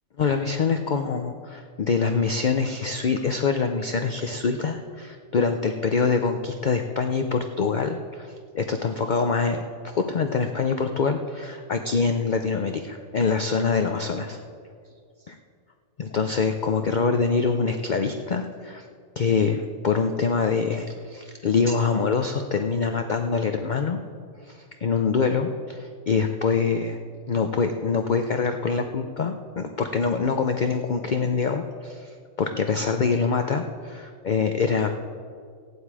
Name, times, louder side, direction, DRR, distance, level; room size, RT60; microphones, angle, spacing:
voice 1, 0.2-8.3 8.5-14.4 15.3-15.4 16.0-18.8 19.2-24.0 24.4-27.0 27.3-34.9, left 5 dB, 50° left, 6 dB, 0.5 m, -25 dB
15.5 x 11.0 x 4.8 m, 2.2 s
omnidirectional pair, 1.5 m